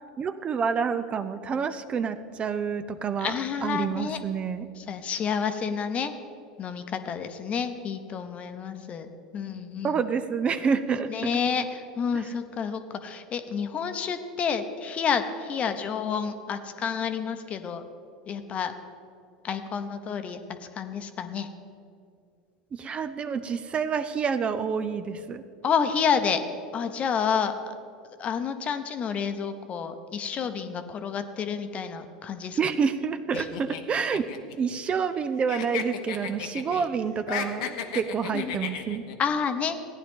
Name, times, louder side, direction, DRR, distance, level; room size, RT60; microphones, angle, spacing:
voice 1, 0.2-3.3 3.6-4.7 9.8-11.3 12.1-12.3 22.7-25.4 32.6-34.3 34.6-39.0, right 6 dB, 30° right, 11 dB, 0.6 m, -28 dB
voice 2, 3.2-4.2 4.8-6.1 6.6-9.9 11.1-17.9 18.3-18.7 19.4-21.5 25.6-26.4 26.7-27.5 28.2-32.6 33.4-33.5 38.3-38.6 39.2-39.8, left 6 dB, 35° left, 9 dB, 0.9 m, -29 dB
sound 1, 33.3-35.2 35.5-36.9 37.2-39.2, left 8 dB, 75° left, 0.9 m, -34 dB
15.0 x 9.8 x 3.7 m, 2.4 s
hypercardioid pair, 90°, 4 cm